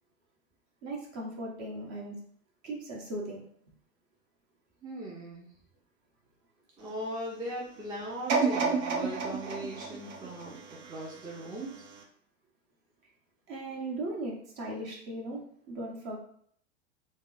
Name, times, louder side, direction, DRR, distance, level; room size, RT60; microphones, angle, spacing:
voice 1, 0.8-2.2 2.6-3.4 13.5-15.4 15.7-16.2, right 1 dB, 45° right, -1 dB, 1.1 m, -37 dB
voice 2, 4.8-5.5 6.8-11.8, right 1 dB, 10° right, -3 dB, 0.4 m, -39 dB
sound 1, 8.3-11.4 11.9-12.0, right 4 dB, 80° right, 0.7 m, -30 dB
3.5 x 2.0 x 2.5 m, 0.63 s
hypercardioid pair, 105°, 38 cm